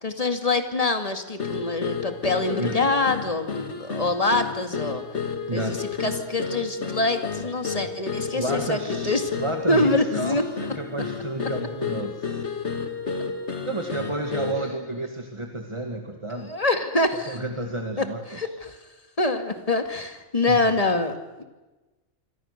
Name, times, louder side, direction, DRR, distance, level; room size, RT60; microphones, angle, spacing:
voice 1, 0.0-5.0 5.5-8.8 9.0-9.2 9.7-10.4 16.5-17.4 18.0-18.8 19.2-21.4, left 2 dB, 30° left, 7 dB, 2.2 m, -25 dB
sound 1, 1.4-14.7, left 5 dB, 65° left, 2.5 m, -31 dB
voice 2, 2.5-3.0 5.5-5.8 8.3-12.5 13.6-16.5 17.3-18.6 20.5-20.7, right 2 dB, 25° right, 4 dB, 1.8 m, -31 dB
27.5 x 24.5 x 6.7 m, 1.1 s
omnidirectional pair, 1.3 m